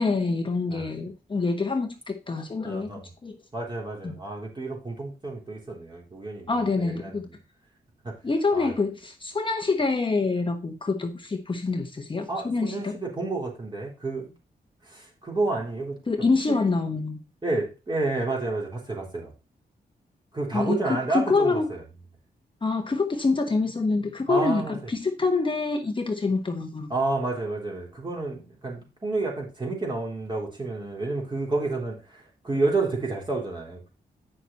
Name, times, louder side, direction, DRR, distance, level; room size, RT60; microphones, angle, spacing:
voice 1, 0.0-2.9 3.2-3.4 4.0-4.2 6.5-7.3 8.2-12.9 16.1-17.2 20.5-21.7 22.6-26.9, left 3 dB, 30° left, 1.1 m, -26 dB
voice 2, 2.6-3.1 3.5-7.2 8.0-8.1 8.5-8.7 12.3-14.3 14.9-16.0 16.5-16.6 17.4-19.3 20.3-21.6 24.3-24.8 26.9-33.9, right 3 dB, 25° right, 3.6 m, -30 dB
9.0 x 6.1 x 4.1 m
wide cardioid pair, 110°, 17 cm